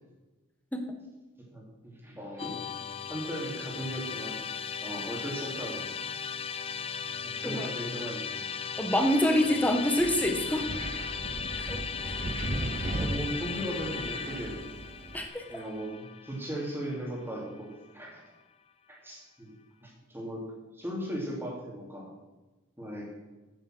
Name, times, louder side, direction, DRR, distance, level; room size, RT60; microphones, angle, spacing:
voice 1, 1.5-2.6 3.1-4.4 4.8-5.9 6.6-6.7 7.2-8.5 13.0-14.6 15.5-18.2 18.9-19.5 19.8-20.4 20.7-22.1 22.8-23.1, equal, 10° right, -2 dB, 2.9 m, -37 dB
Musical instrument, 2.4-17.6, left 7 dB, 25° left, 0.6 m, -37 dB
voice 2, 8.8-10.7 11.6-11.8 12.0-12.2 15.1-15.5, left 1 dB, 5° left, 4 dB, 1.2 m, -26 dB
Wind, 10.0-15.3, right 2 dB, 30° right, 0.6 m, -36 dB
9.5 x 9.3 x 6.2 m, 1.1 s
head